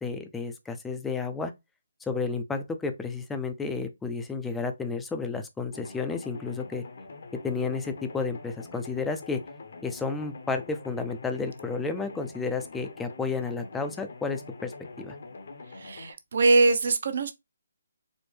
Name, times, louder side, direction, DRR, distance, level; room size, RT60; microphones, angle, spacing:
voice 1, 0.0-1.5 2.1-6.8 7.4-9.4 9.8-14.7 15.0-15.2, left 4 dB, 5° left, 0.4 m, -32 dB
sound 1, 5.7-16.1, left 3 dB, 60° left, 0.7 m, -45 dB
voice 2, 15.7-17.3, right 3 dB, 55° right, 0.7 m, -23 dB
4.3 x 2.1 x 3.2 m
hypercardioid pair, 165°, 0 cm